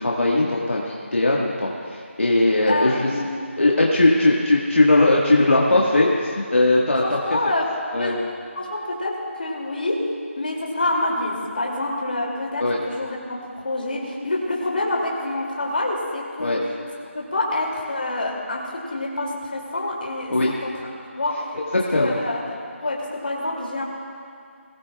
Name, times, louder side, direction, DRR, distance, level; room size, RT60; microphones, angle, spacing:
voice 1, 0.0-3.1 3.6-7.0 7.9-8.1 12.6-12.8 16.4-16.6 20.3-20.5 21.9-22.2, left 2 dB, 65° left, -3 dB, 1.7 m, -19 dB
voice 2, 2.7-3.6 6.9-7.7 8.0-8.2 8.6-10.1 10.3-16.7 17.1-20.7 21.2-21.5 21.9-23.8, left 2 dB, 45° left, -2 dB, 2.8 m, -27 dB
21.5 x 15.0 x 2.4 m, 2.3 s
figure-of-eight pair, 175°, 7 cm